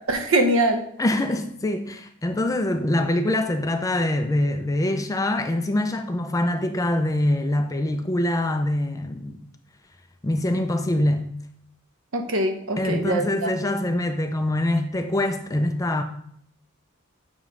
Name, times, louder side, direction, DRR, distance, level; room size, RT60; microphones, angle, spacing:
voice 1, 0.1-0.8 12.1-13.5, right 1 dB, 70° right, 0.9 m, -22 dB
voice 2, 1.0-9.4 10.2-11.3 12.8-16.0, left 1 dB, 15° left, 0.4 m, -24 dB
7.4 x 3.2 x 4.9 m
head